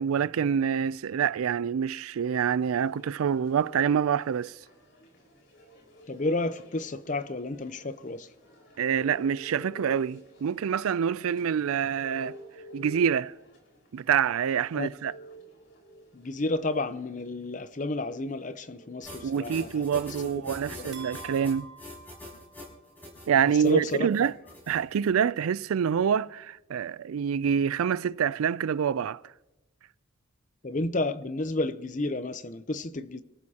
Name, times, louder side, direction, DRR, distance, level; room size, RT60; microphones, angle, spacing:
voice 1, 0.0-4.6 8.8-12.4 12.7-13.3 13.9-15.1 19.2-21.7 23.3-24.3 24.7-29.2, right 7 dB, 80° right, 0.4 m, -26 dB
sound 1, 2.6-20.4, left 1 dB, 55° left, 4.8 m, -51 dB
voice 2, 6.1-8.3 14.7-14.9 16.1-20.0 20.7-21.0 23.6-24.1 30.6-33.2, left 2 dB, 35° left, 0.6 m, -31 dB
sound 2, 19.0-25.1, left 1 dB, 10° left, 5.9 m, -45 dB
sound 3, 20.9-23.1, right 3 dB, 60° right, 2.7 m, -47 dB
27.0 x 14.0 x 2.9 m
head